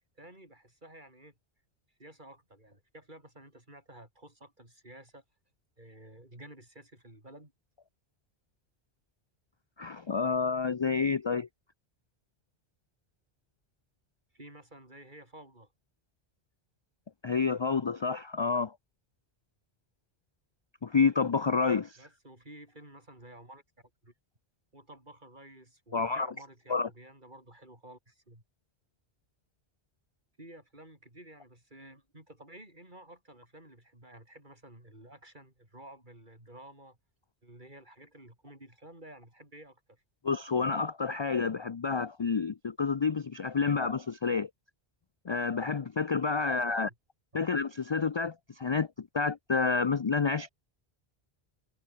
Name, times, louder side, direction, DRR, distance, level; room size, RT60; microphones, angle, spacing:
voice 1, 0.2-1.3 2.0-5.2 5.8-7.5 14.3-15.7 22.0-24.1 24.7-28.4 30.4-37.0 37.4-40.0 46.5-46.9 47.3-47.4, right 1 dB, 45° right, 6.7 m, -52 dB
voice 2, 9.8-11.5 17.2-18.7 20.8-22.0 25.9-26.3 26.7-26.9 40.2-44.5 45.2-46.9 47.3-50.5, left 5 dB, 35° left, 0.4 m, -29 dB
omnidirectional pair, 1.1 m